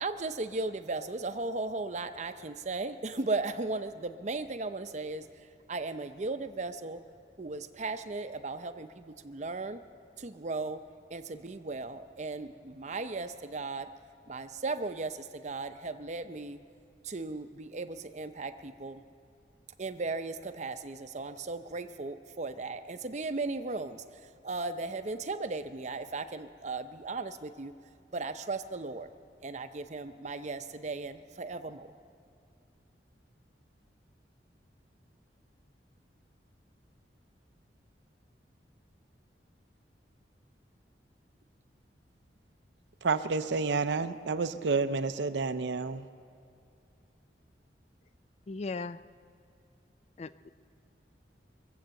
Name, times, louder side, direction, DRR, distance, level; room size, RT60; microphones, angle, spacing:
voice 1, 0.0-5.3 5.7-7.0 7.4-9.8 10.2-10.8 11.1-13.9 14.3-16.6 17.0-19.0 19.8-27.7 28.1-29.1 29.4-31.9, right 3 dB, 40° right, 0.6 m, -36 dB
voice 2, 43.0-46.0, right 4 dB, 80° right, 0.6 m, -29 dB
voice 3, 48.5-49.0 50.2-50.5, left 3 dB, 35° left, 0.4 m, -37 dB
22.5 x 8.0 x 7.7 m
head